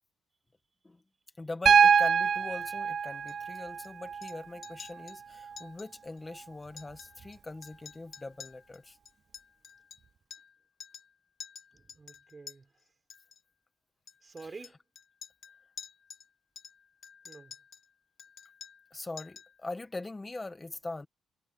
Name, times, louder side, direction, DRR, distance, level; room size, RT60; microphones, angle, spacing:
voice 1, 1.4-9.0 18.9-21.1, left 2 dB, 20° left, 1.8 m, -41 dB
Piano, 1.7-5.7 7.2-7.3, right 6 dB, 50° right, 0.4 m, -26 dB
Chink clink, 3.3-3.9 4.2-4.4 4.6-5.2 5.6-5.9 6.2-6.3 6.6-7.4 7.6-10.6 10.8-11.1 11.4-12.6 13.1-13.4 14.1-16.3 16.6-17.9 18.2-18.9 19.2-19.6, left 7 dB, 55° left, 2.4 m, -49 dB
voice 2, 11.7-12.7 14.2-14.8 17.2-17.5, right 4 dB, 30° right, 4.5 m, -48 dB
cardioid pair, 90°, 0 cm